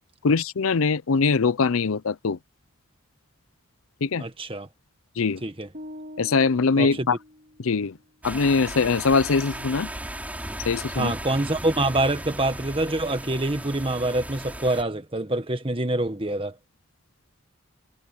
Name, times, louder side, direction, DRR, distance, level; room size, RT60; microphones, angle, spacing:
voice 1, 0.2-2.4 4.0-4.2 5.2-5.4 6.2-7.2 7.6-8.0 8.2-9.9 10.6-11.1, left 4 dB, 80° left, 0.6 m, -22 dB
voice 2, 4.2-4.7 5.4-5.7 6.8-7.1 11.0-16.5, right 2 dB, 25° right, 1.5 m, -26 dB
sound 1, 5.7-7.9, left 1 dB, 40° right, 3.1 m, -43 dB
sound 2, 8.2-14.8, right 1 dB, 5° right, 5.4 m, -36 dB
head